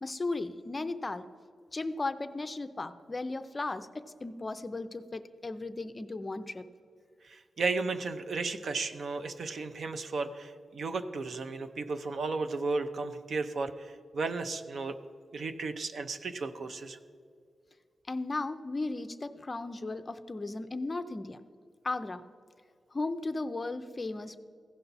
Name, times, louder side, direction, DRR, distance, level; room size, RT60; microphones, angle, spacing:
voice 1, 0.0-1.3 1.7-6.6 18.1-21.4 21.8-22.2 22.9-24.4, left 2 dB, 30° left, 10 dB, 0.4 m, -36 dB
voice 2, 7.3-15.0 15.3-17.0, right 3 dB, 60° right, 8 dB, 0.6 m, -34 dB
15.5 x 5.7 x 4.1 m, 2.3 s
wide cardioid pair, 110°, 0 cm